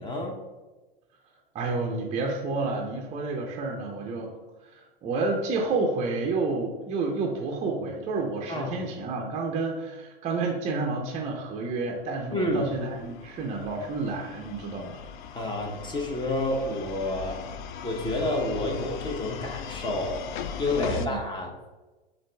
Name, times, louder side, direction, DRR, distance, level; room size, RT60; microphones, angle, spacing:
voice 1, 0.0-0.4 8.5-8.7 12.3-12.7 15.3-17.4 17.8-20.2 20.6-21.5, left 1 dB, 15° left, 1 dB, 0.8 m, -29 dB
voice 2, 1.5-4.3 4.7-15.0 20.7-21.2, right 3 dB, 25° right, -1 dB, 0.6 m, -30 dB
sound 1, 12.2-21.1, left 7 dB, 55° left, 0.4 m, -39 dB
7.3 x 2.6 x 2.2 m, 1.2 s
hypercardioid pair, 100°, 30 cm